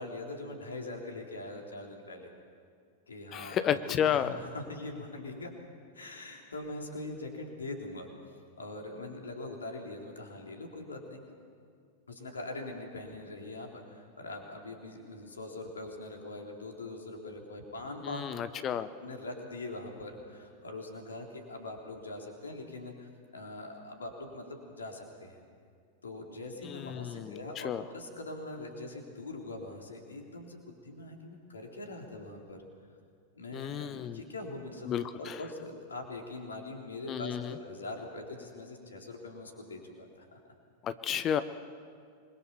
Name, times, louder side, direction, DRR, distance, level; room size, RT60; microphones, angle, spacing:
voice 1, 0.0-2.3 3.1-5.5 5.9-8.1 8.6-11.2 12.1-18.2 18.7-25.4 26.0-32.6 33.4-40.4, left 2 dB, 75° left, 2 dB, 3.8 m, -42 dB
voice 2, 3.3-4.3 18.0-18.9 26.7-27.4 27.6-27.8 33.5-34.2 34.9-35.3 37.1-37.5 40.8-41.4, left 9 dB, 30° left, 12 dB, 1.0 m, -32 dB
26.5 x 22.0 x 7.1 m, 2.2 s
figure-of-eight pair, 90°, 0 cm